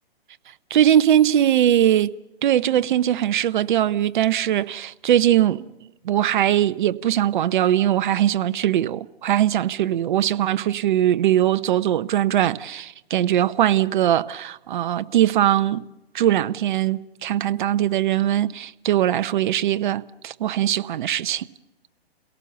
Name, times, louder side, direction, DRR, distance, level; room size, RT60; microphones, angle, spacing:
voice 1, 0.7-2.1 2.4-5.7 6.0-15.9 16.1-21.4, right 11 dB, 50° right, 0.9 m, -21 dB
29.5 x 18.0 x 7.0 m
hypercardioid pair, 145°, 31 cm